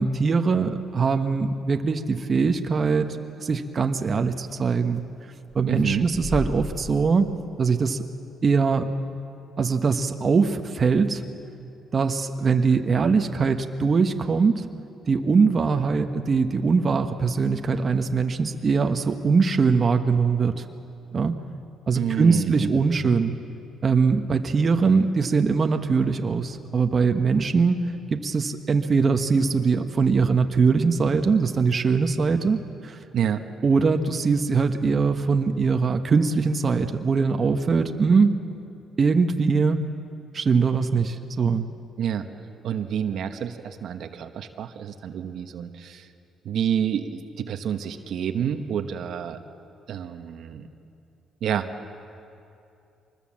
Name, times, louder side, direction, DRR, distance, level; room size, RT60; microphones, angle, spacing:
voice 1, 0.0-3.1 3.4-5.0 5.5-7.3 7.6-8.0 8.4-8.9 9.6-11.2 11.9-14.7 15.1-20.7 21.1-21.3 21.9-23.3 23.8-27.8 28.1-32.6 32.8-33.0 33.6-38.4 39.0-39.8 40.3-41.7, right 5 dB, 35° right, 6 dB, 1.1 m, -22 dB
sound 1, 0.7-1.1 2.9-3.0 4.0-4.1 4.4-5.0 5.5-7.4, left 1 dB, 10° left, 2.8 m, -35 dB
voice 2, 5.7-6.1 21.9-22.9 33.1-33.4 42.0-42.3 42.6-46.1 46.4-49.4 49.9-50.7 51.4-51.7, right 9 dB, 65° right, 7 dB, 1.1 m, -28 dB
24.5 x 20.5 x 7.4 m, 2.7 s
cardioid pair, 100°, 0 cm